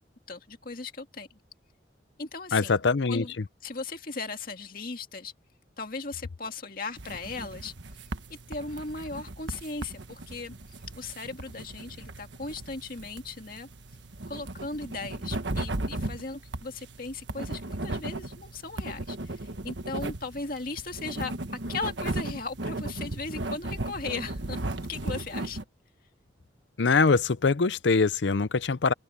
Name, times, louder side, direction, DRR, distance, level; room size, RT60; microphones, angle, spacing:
voice 1, 0.3-1.4 2.2-2.8 3.1-3.3 3.6-5.3 5.8-7.7 8.3-10.5 11.0-13.7 14.3-21.3 21.7-24.6 24.9-25.6, left 3 dB, 50° left, 2.1 m, -37 dB
voice 2, 2.5-3.2 26.8-28.9, left 4 dB, 75° left, 0.6 m, -23 dB
sound 1, 7.0-25.6, right 2 dB, 80° right, 1.4 m, -36 dB
open air
head